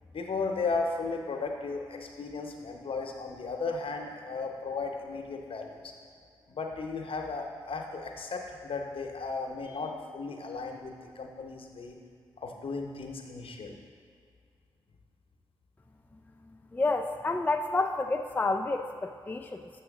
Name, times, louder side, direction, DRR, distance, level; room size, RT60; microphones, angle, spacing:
voice 1, 0.1-5.9 6.5-12.0 12.4-13.8, left 4 dB, 60° left, 2 dB, 0.8 m, -35 dB
voice 2, 16.5-19.7, left 3 dB, 15° left, 5 dB, 0.4 m, -30 dB
7.1 x 3.1 x 6.0 m, 2.3 s
supercardioid pair, 45°, 11 cm